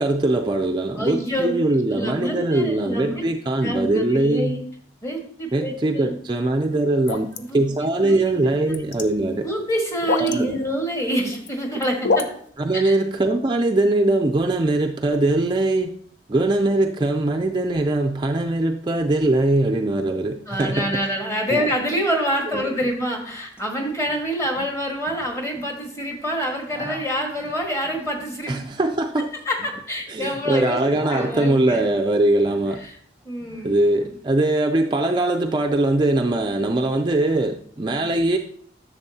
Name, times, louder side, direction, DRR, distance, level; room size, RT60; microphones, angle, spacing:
voice 1, 0.0-4.6 5.5-7.3 7.5-9.5 10.2-10.6 12.6-15.9 16.3-20.9 21.5-21.7 22.5-22.7 28.5-29.3 30.1-32.8 33.6-38.4, right 2 dB, 25° right, 4 dB, 0.4 m, -21 dB
voice 2, 1.0-3.2 3.6-4.6 5.0-6.1 7.4-7.7 8.0-8.2 8.5-8.7 9.4-12.2 12.7-12.9 20.5-28.5 29.4-31.9 32.8-32.9 33.2-34.1, equal, 15° left, 1 dB, 1.5 m, -26 dB
sound 1, 7.1-7.4 8.5-9.0 10.0-10.4 11.2-11.5 11.8-12.3, left 3 dB, 80° left, 0.7 m, -23 dB
sound 2, 23.6-23.7 23.9-24.3 24.5-25.7 26.4-30.4 30.7-32.9 33.2-34.2, right 1 dB, 10° right, 0.8 m, -41 dB
10.5 x 7.0 x 2.8 m, 0.64 s
head